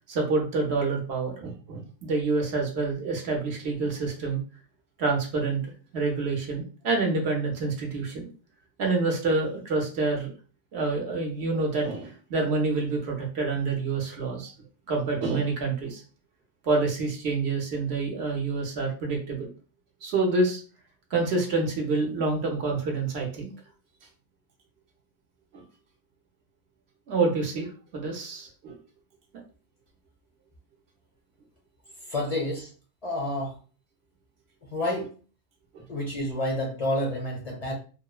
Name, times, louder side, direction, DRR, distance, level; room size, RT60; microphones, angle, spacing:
voice 1, 0.1-4.4 5.0-5.6 5.9-8.3 8.8-10.3 10.7-14.5 14.9-16.0 16.6-19.5 20.0-20.6 21.1-23.5 25.5-25.6 27.1-28.8 35.7-35.8, right 3 dB, 60° right, 1 dB, 1.0 m, -27 dB
voice 2, 32.1-32.7 33.0-33.6 34.6-35.2 35.9-37.7, left 1 dB, 45° left, -2 dB, 0.5 m, -29 dB
3.0 x 2.0 x 2.3 m, 0.37 s
omnidirectional pair, 1.3 m